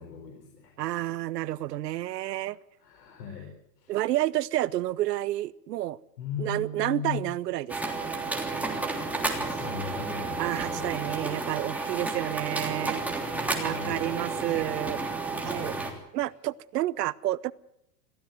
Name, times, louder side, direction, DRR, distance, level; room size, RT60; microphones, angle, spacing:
voice 1, 0.0-0.8 2.8-3.9 6.2-7.2 9.3-11.2 13.1-14.6 15.3-16.0, left 6 dB, 80° left, 3 dB, 4.6 m, -39 dB
voice 2, 0.8-2.6 3.9-6.0 6.4-8.0 10.4-13.3 13.6-15.0 15.4-15.8 16.1-17.5, right 15 dB, 85° right, 19 dB, 1.0 m, -30 dB
sound 1, 7.7-15.9, right 3 dB, 5° right, 3.2 m, -31 dB
22.5 x 15.5 x 8.1 m, 0.78 s
supercardioid pair, 135°, 47 cm